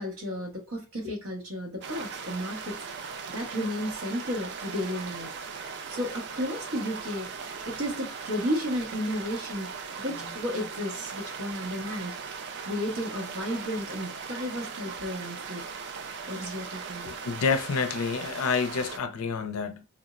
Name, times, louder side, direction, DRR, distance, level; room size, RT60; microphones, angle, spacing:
voice 1, 0.0-2.8 3.3-5.3 5.7-7.3 7.6-9.7 10.0-12.1 12.6-15.7 16.0-17.1, equal, 75° right, 1.1 m, -33 dB
sound 1, 1.8-19.0, right 5 dB, 50° right, 0.3 m, -39 dB
voice 2, 17.2-19.9, left 5 dB, 75° left, 0.4 m, -28 dB
3.5 x 2.0 x 2.4 m
head